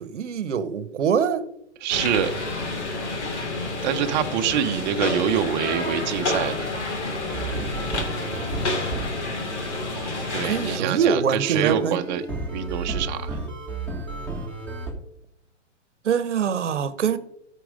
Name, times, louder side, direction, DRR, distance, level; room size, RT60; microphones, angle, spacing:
voice 1, 0.0-1.4 10.4-12.0 16.0-17.2, right 7 dB, 75° right, 1.1 m, -24 dB
voice 2, 1.8-2.3 3.8-6.7 10.3-12.2 12.5-13.4, right 9 dB, 40° right, 0.9 m, -25 dB
sound 1, 1.9-10.8, left 2 dB, 70° left, 2.6 m, -29 dB
sound 2, 7.3-14.9, right 2 dB, 5° left, 2.4 m, -33 dB
13.5 x 4.6 x 5.1 m
hypercardioid pair, 125°, 36 cm